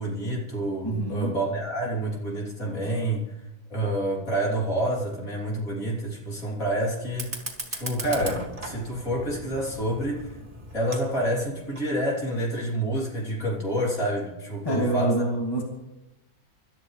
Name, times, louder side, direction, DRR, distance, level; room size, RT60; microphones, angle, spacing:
voice 1, 0.0-3.3 3.7-7.4 7.7-10.4 10.7-15.2, right 1 dB, 60° left, -3 dB, 3.8 m, -28 dB
voice 2, 0.8-1.4 14.6-15.6, right 2 dB, 15° left, 0 dB, 2.3 m, -26 dB
Fire, 7.1-12.1, right 2 dB, 35° right, 2.3 m, -38 dB
25.5 x 12.5 x 3.3 m, 0.96 s
omnidirectional pair, 1.6 m